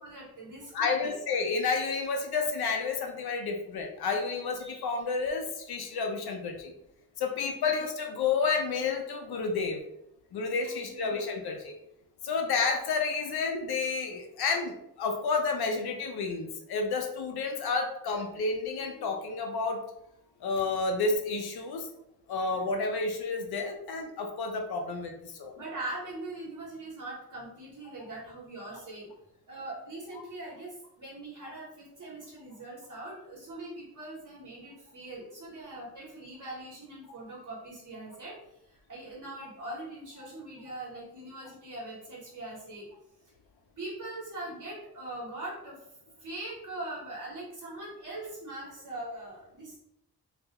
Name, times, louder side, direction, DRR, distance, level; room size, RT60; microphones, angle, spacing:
voice 1, 0.0-1.1 7.4-7.7 10.6-11.2 25.5-29.1 29.5-42.9 43.8-49.8, right 2 dB, 55° right, -5 dB, 1.0 m, -42 dB
voice 2, 0.7-6.7 7.2-9.8 10.3-11.7 12.2-19.8 20.4-21.9 22.3-25.5 31.4-31.5, left 4 dB, 90° left, 4 dB, 0.5 m, -30 dB
3.2 x 2.3 x 2.8 m, 0.80 s
wide cardioid pair, 160°, 37 cm